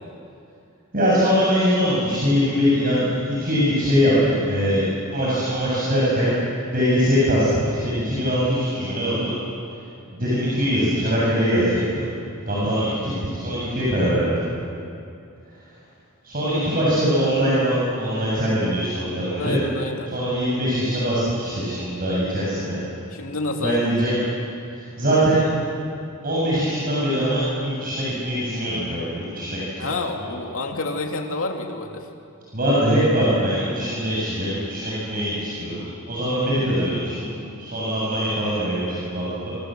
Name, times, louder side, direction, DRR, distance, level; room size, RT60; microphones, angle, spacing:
voice 1, 0.9-6.3 6.7-9.3 10.1-12.1 12.4-14.5 16.2-19.6 20.0-22.8 23.6-24.2 24.7-25.5 26.2-29.9 32.5-39.5, equal, 45° right, -7 dB, 7.4 m, -22 dB
voice 2, 19.4-20.1 23.1-23.8 29.8-32.0, left 2 dB, 70° left, 2 dB, 3.1 m, -28 dB
27.5 x 26.5 x 7.8 m, 2.5 s
head